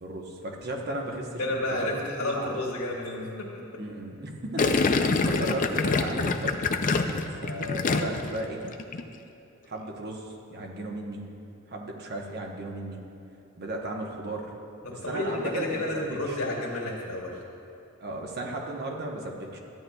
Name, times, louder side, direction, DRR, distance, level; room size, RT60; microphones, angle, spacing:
voice 1, 0.0-2.5 3.8-6.7 7.4-8.6 9.7-11.2 11.7-13.0 13.6-14.5 14.9-16.4 18.0-19.6, right 1 dB, 50° right, 1 dB, 1.0 m, -35 dB
voice 2, 1.4-3.6 14.8-17.3, left 1 dB, 90° left, -4 dB, 2.0 m, -31 dB
Gurgling, 4.6-8.4 8.6-9.0, left 4 dB, 40° left, 0.4 m, -25 dB
14.0 x 9.2 x 2.3 m, 2.8 s
head